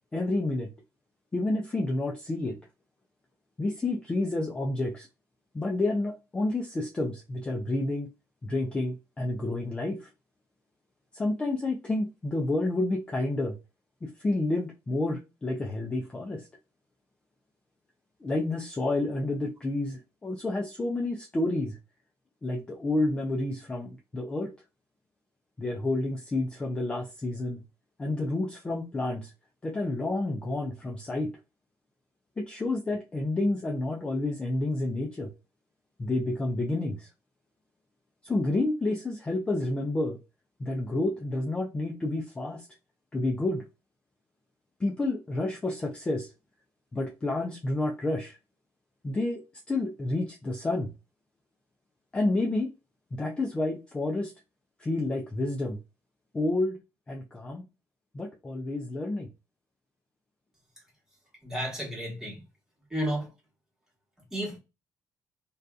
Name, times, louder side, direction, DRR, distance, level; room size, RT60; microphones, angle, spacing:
voice 1, 0.1-0.7 1.3-2.6 3.6-5.1 5.5-8.1 8.4-10.1 11.1-13.6 14.0-16.5 18.2-21.8 22.4-24.5 25.6-27.6 28.0-29.3 29.6-31.3 32.4-35.3 36.0-37.1 38.2-40.2 40.6-42.7 43.1-43.6 44.8-46.3 46.9-48.4 49.0-50.9 52.1-52.7 53.1-54.3 54.8-55.8 56.3-56.8 57.1-57.7 58.1-59.3, left 2 dB, 15° left, 0.4 m, -29 dB
voice 2, 61.4-62.4 62.9-63.3 64.3-64.6, equal, 10° right, 1.3 m, -32 dB
2.6 x 2.3 x 2.2 m
cardioid pair, 160°, 7 cm